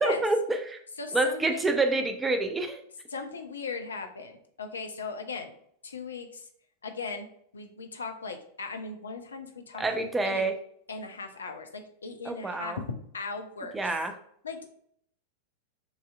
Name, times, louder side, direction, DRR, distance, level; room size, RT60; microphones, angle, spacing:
voice 1, 0.0-0.8 1.1-2.8 9.8-10.5 12.3-12.8 13.7-14.1, right 2 dB, 10° right, 6 dB, 0.6 m, -27 dB
voice 2, 1.0-1.7 3.1-5.5 5.8-6.5 6.8-7.3 7.5-10.4 10.9-13.9 14.4-14.6, left 4 dB, 70° left, 6 dB, 0.6 m, -38 dB
7.0 x 2.8 x 2.3 m, 0.67 s
figure-of-eight pair, 90°, 0 cm